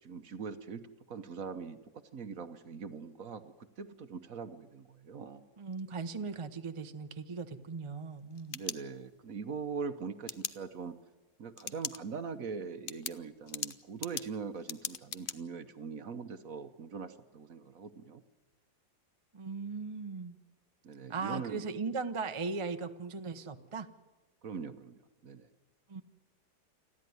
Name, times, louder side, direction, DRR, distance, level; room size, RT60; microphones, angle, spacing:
voice 1, 0.0-5.4 8.5-10.9 11.4-18.2 20.8-21.6 24.4-25.5, right 5 dB, 55° right, 9 dB, 1.2 m, -42 dB
voice 2, 5.6-8.6 19.3-20.4 21.1-23.9 25.9-26.0, right 4 dB, 30° right, 8 dB, 0.6 m, -38 dB
sound 1, 8.1-9.3 10.3-10.5 11.6-12.0 12.4-12.5 12.9-15.4, left 7 dB, 65° left, 0.5 m, -39 dB
29.0 x 11.0 x 9.5 m, 1.2 s
omnidirectional pair, 2.1 m